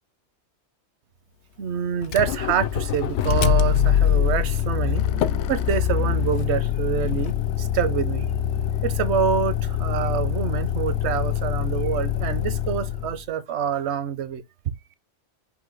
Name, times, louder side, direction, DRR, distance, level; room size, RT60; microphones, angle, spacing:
voice 1, 1.6-8.3 8.8-14.4, right 8 dB, 75° right, 1.0 m, -26 dB
Motor vehicle (road), 2.0-13.2, left 9 dB, 80° left, 0.9 m, -24 dB
5.5 x 2.2 x 4.4 m
omnidirectional pair, 1.2 m